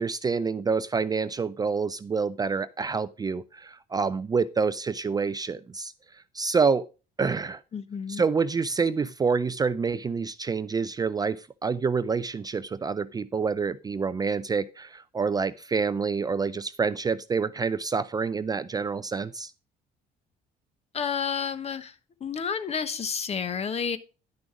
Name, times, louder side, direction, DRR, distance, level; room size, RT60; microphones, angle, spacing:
voice 1, 0.0-6.8 7.2-7.6 8.1-19.5, right 5 dB, 25° right, 0.4 m, -27 dB
voice 2, 7.7-8.2 20.9-21.9 22.2-24.0, left 6 dB, 40° left, 1.0 m, -30 dB
10.5 x 6.1 x 4.8 m
cardioid pair, 110°, 17 cm